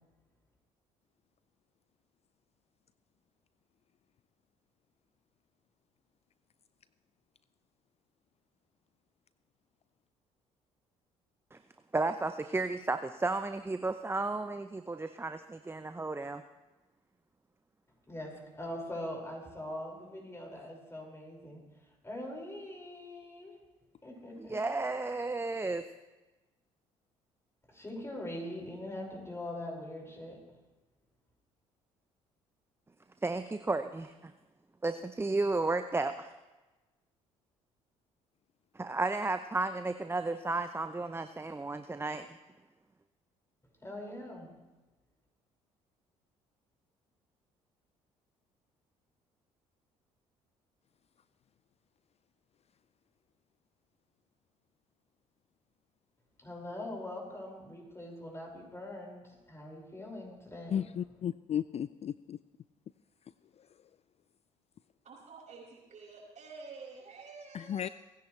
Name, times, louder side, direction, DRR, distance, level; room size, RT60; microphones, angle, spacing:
voice 1, 11.9-16.4 24.4-25.8 33.2-34.3 34.8-36.3 38.7-42.4, right 3 dB, 15° right, 9 dB, 0.7 m, -33 dB
voice 2, 18.1-21.6 22.0-23.5 24.0-24.6 27.7-30.4 43.8-44.5 56.4-60.8, left 1 dB, 15° left, 0 dB, 5.5 m, -42 dB
voice 3, 60.7-62.4 67.5-67.9, left 9 dB, 40° left, 15 dB, 0.4 m, -34 dB
voice 4, 65.0-67.9, right 4 dB, 50° right, -2 dB, 5.7 m, -49 dB
29.0 x 10.5 x 3.3 m, 1.1 s
hypercardioid pair, 55°, 16 cm